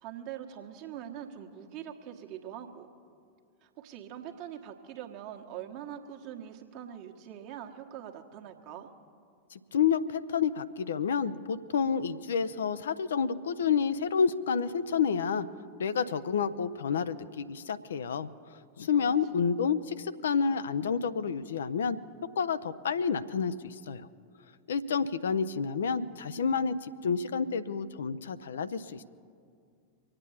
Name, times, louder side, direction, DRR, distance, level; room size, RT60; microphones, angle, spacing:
voice 1, 0.0-2.9 3.6-8.9 18.9-19.4, right 10 dB, 45° right, 4 dB, 1.3 m, -43 dB
voice 2, 9.5-15.5 15.8-22.0 22.4-24.1 24.7-29.0, left 6 dB, 65° left, 12 dB, 0.5 m, -29 dB
24.5 x 8.9 x 5.7 m, 2.2 s
figure-of-eight pair, 90°, 0 cm